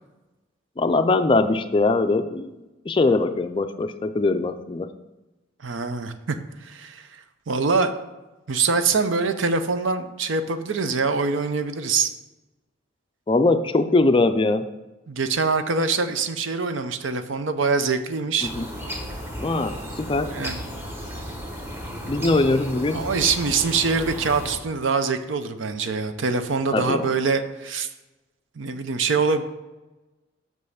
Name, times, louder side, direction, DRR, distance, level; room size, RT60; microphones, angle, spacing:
voice 1, 0.8-2.5 2.9-4.9 13.3-14.6 18.5-18.7 19.4-20.3 22.1-23.0 26.7-27.1, left 3 dB, 25° left, 9 dB, 0.4 m, -21 dB
voice 2, 5.6-7.1 7.5-7.9 8.5-12.1 15.1-18.5 20.1-20.6 22.9-27.9 28.6-29.4, right 4 dB, 70° right, 9 dB, 0.6 m, -24 dB
sound 1, 18.4-24.6, equal, 10° right, 0.9 m, -34 dB
6.1 x 5.4 x 6.4 m, 1.1 s
head